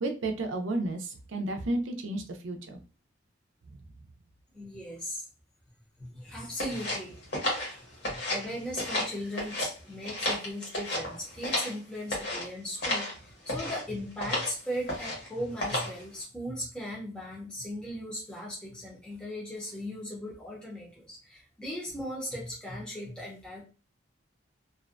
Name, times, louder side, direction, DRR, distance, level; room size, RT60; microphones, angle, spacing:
voice 1, 0.0-2.8, right 2 dB, 85° right, 5 dB, 0.5 m, -32 dB
voice 2, 4.5-5.3 6.0-7.1 7.7-23.6, equal, 5° left, -5 dB, 0.6 m, -38 dB
sound 1, 6.6-8.5 8.7-9.7 10.0-11.8 12.1-12.5 12.8-13.1 13.5-13.8 14.2-14.5 14.9-15.3 15.6-16.0, left 1 dB, 60° left, 1.0 m, -32 dB
2.5 x 2.1 x 2.4 m, 0.35 s
head